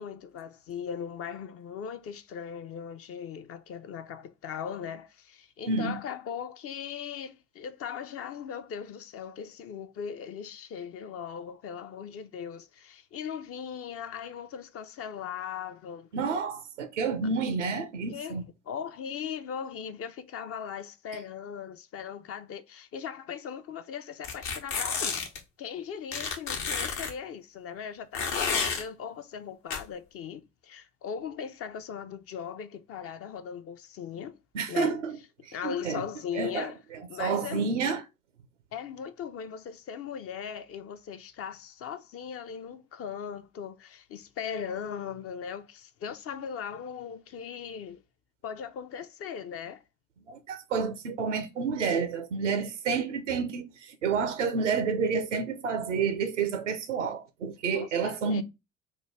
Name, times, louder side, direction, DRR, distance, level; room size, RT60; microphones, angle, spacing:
voice 1, 0.0-16.1 18.1-25.2 25.6-34.4 34.7-35.0 35.5-36.8 37.1-37.7 38.7-48.0 48.4-49.8 57.7-58.4, left 7 dB, 40° left, 0.5 m, -39 dB
voice 2, 5.7-6.0 16.1-18.4 34.5-35.2 35.4-36.0 36.3-36.7 37.2-38.0 50.3-58.4, right 5 dB, 80° right, 0.6 m, -29 dB
sound 1, 24.2-25.4 26.1-27.1 28.1-28.8 29.7-29.8, left 5 dB, 60° left, 0.9 m, -30 dB
4.4 x 2.2 x 3.2 m
figure-of-eight pair, 50°, 36 cm